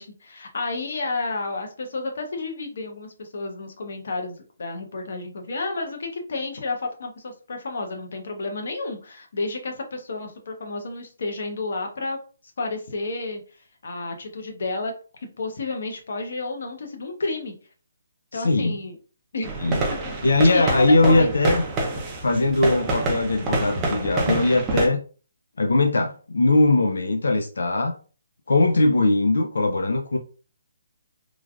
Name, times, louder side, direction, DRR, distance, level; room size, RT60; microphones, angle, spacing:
voice 1, 0.0-12.2 12.6-13.4 13.8-14.9 15.2-17.5 18.3-19.0 19.3-19.5 19.9-21.3, left 3 dB, 55° left, 0.8 m, -31 dB
voice 2, 18.3-18.8 19.6-19.9 20.2-21.6 22.2-25.0 25.6-27.9 28.5-30.2, left 2 dB, 90° left, 0.4 m, -20 dB
sound 1, 19.4-24.9, right 2 dB, 15° right, 0.5 m, -27 dB
3.1 x 2.3 x 2.4 m
hypercardioid pair, 170°, 0 cm